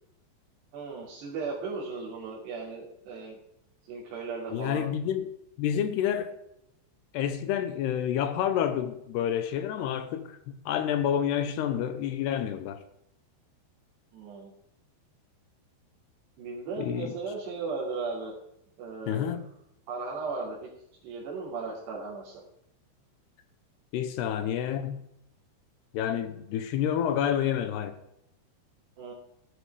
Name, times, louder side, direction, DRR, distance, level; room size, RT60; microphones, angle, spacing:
voice 1, 0.7-3.4 3.9-4.9 14.1-14.5 16.4-18.3 18.8-19.4 19.9-20.7 21.0-22.3 29.0-29.1, right 4 dB, 70° right, 5.4 m, -36 dB
voice 2, 4.5-5.3 5.6-6.3 7.1-10.4 10.7-12.8 16.8-17.1 19.1-19.5 23.9-25.1 25.9-28.0, left 9 dB, 75° left, 2.8 m, -29 dB
16.5 x 11.0 x 4.9 m
omnidirectional pair, 5.2 m